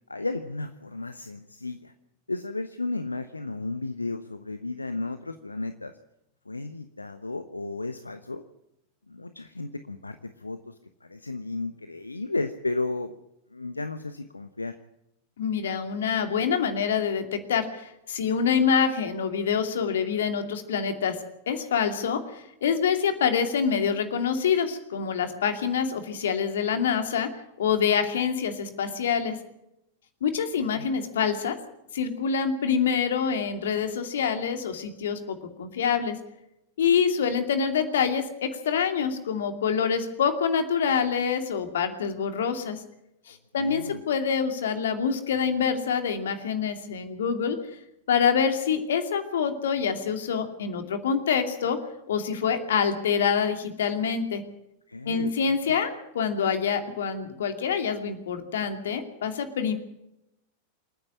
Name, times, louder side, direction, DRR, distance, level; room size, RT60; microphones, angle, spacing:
voice 1, 0.1-1.9 2.3-5.9 6.5-8.4 9.1-10.7 11.0-13.1 13.5-14.8 30.6-30.9 43.6-44.0 54.9-55.6, left 3 dB, 80° left, 10 dB, 0.9 m, -34 dB
voice 2, 15.4-21.2 21.5-27.3 27.6-29.4 30.2-31.6 31.9-36.2 36.8-42.8 43.3-47.6 48.1-51.8 52.1-54.4 55.1-55.9 56.1-59.7, left 7 dB, 60° left, 8 dB, 2.6 m, -26 dB
27.5 x 9.8 x 9.6 m, 0.85 s
figure-of-eight pair, 90°, 0 cm